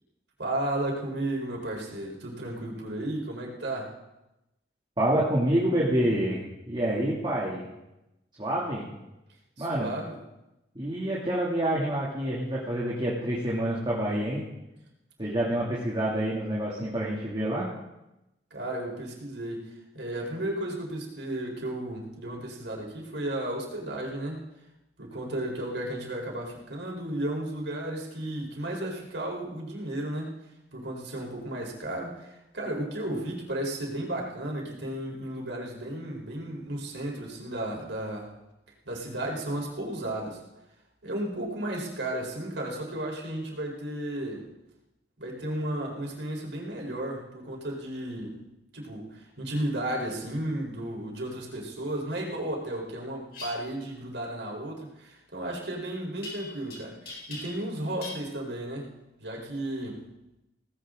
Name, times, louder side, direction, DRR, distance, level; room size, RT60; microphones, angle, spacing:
voice 1, 0.4-3.9 9.6-10.2 18.5-19.7 19.9-24.4 25.0-30.3 30.7-38.3 38.9-40.4 41.0-44.4 45.2-48.4 48.7-58.9 59.2-60.0, right 1 dB, 90° right, -1 dB, 4.4 m, -34 dB
voice 2, 5.0-7.7 8.4-8.9 9.6-9.9 10.7-14.4 15.2-17.7, right 1 dB, 25° right, -6 dB, 2.7 m, -27 dB
sound 1, 53.3-53.5 56.2-56.8 57.1-57.7 58.0-58.2, left 1 dB, 55° left, 4.5 m, -40 dB
18.0 x 16.0 x 3.9 m, 0.95 s
head